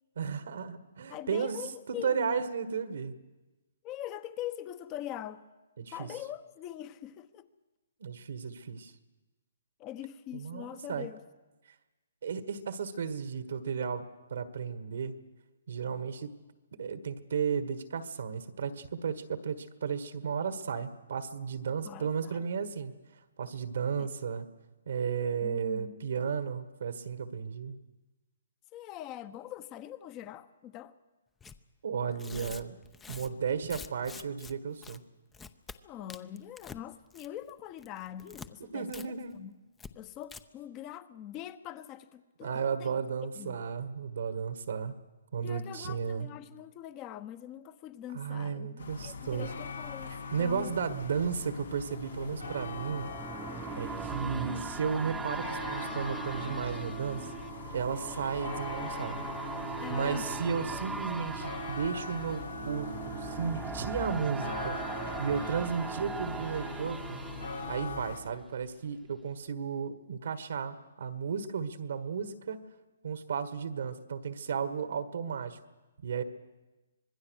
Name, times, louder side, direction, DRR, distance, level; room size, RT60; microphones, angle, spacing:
voice 1, 0.1-1.6 1.9-3.1 5.8-6.1 8.0-8.9 10.3-11.1 12.2-15.2 15.7-16.3 16.8-22.9 23.4-24.5 24.9-27.8 31.8-32.8 33.1-35.0 38.7-39.4 42.4-44.9 45.3-46.3 48.1-49.5 50.3-53.1 53.8-57.3 57.7-59.2 59.9-67.2 67.7-72.6 73.0-75.6 76.0-76.2, right 6 dB, 70° right, 1.6 m, -34 dB
voice 2, 1.1-2.4 3.8-5.4 5.9-7.5 9.8-11.2 21.8-22.4 24.0-24.1 25.4-26.1 28.7-30.9 35.8-39.6 39.9-43.0 43.4-43.6 45.4-50.1 50.4-50.7 59.8-60.3, left 12 dB, 25° left, 1.1 m, -43 dB
Tearing, 31.4-31.6 32.1-34.5 34.8-35.0 35.3-35.8 36.1-36.8 37.1-37.5 37.8-38.5 38.9-39.1 39.3-39.4 39.8-39.9 40.2-40.4, left 5 dB, 10° left, 0.8 m, -46 dB
sound 1, 48.8-68.2, left 2 dB, 85° left, 3.7 m, -41 dB
sound 2, 51.3-68.7 69.1-69.2, right 4 dB, 5° right, 1.1 m, -41 dB
25.5 x 20.5 x 6.5 m
hypercardioid pair, 145°, 0 cm